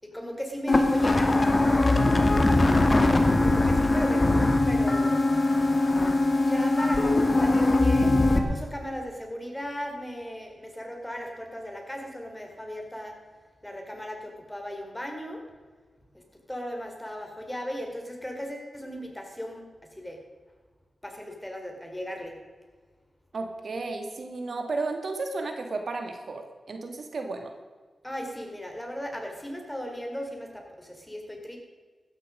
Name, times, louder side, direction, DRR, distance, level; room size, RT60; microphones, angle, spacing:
voice 1, 0.0-1.7 3.4-5.5 6.4-13.1 13.6-15.4 16.1-16.2 16.5-19.7 20.0-20.2 21.0-22.4 24.0-24.1 28.0-31.6, equal, 10° left, 2 dB, 4.5 m, -37 dB
sound 1, 0.7-8.4, left 2 dB, 40° left, 2.3 m, -21 dB
voice 2, 23.3-27.5, right 3 dB, 65° right, 5 dB, 2.2 m, -34 dB
15.5 x 13.5 x 5.2 m, 1.4 s
cardioid pair, 55°, 0 cm